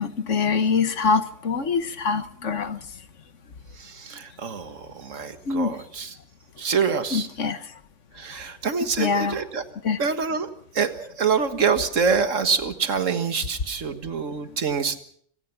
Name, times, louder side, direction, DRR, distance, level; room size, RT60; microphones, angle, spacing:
voice 1, 0.0-2.8 5.5-5.7 7.1-7.6 9.0-9.4 9.8-10.0, left 5 dB, 70° left, 11 dB, 1.6 m, -24 dB
voice 2, 3.8-6.1 6.6-7.3 8.1-9.6 10.0-15.0, right 5 dB, 75° right, 9 dB, 1.8 m, -26 dB
25.0 x 18.0 x 5.9 m, 0.63 s
omnidirectional pair, 1.3 m